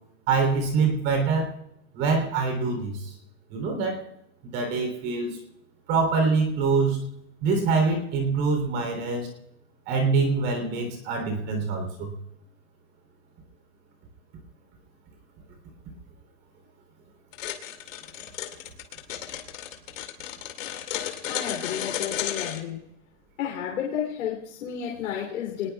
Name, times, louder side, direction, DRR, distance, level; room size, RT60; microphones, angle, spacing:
voice 1, 0.3-1.5 1.9-3.1 3.5-4.0 4.4-5.4 5.9-7.0 7.4-9.3 9.9-12.1, right 4 dB, 30° right, 4 dB, 3.4 m, -25 dB
sound 1, 17.3-22.6, left 11 dB, 70° left, 2.4 m, -33 dB
voice 2, 21.3-22.8 23.4-25.7, left 9 dB, 90° left, -2 dB, 3.4 m, -31 dB
27.5 x 20.0 x 2.4 m, 0.80 s
supercardioid pair, 175°, 40 cm